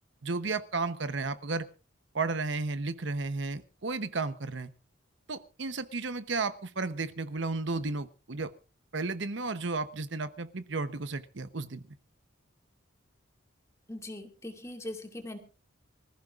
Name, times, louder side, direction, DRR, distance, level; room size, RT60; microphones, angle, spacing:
voice 1, 0.2-1.7 2.1-4.7 5.3-8.5 8.9-11.8, right 3 dB, 65° right, 12 dB, 0.9 m, -33 dB
voice 2, 13.9-15.4, left 1 dB, 15° left, 4 dB, 2.4 m, -40 dB
25.5 x 14.5 x 2.5 m, 0.33 s
head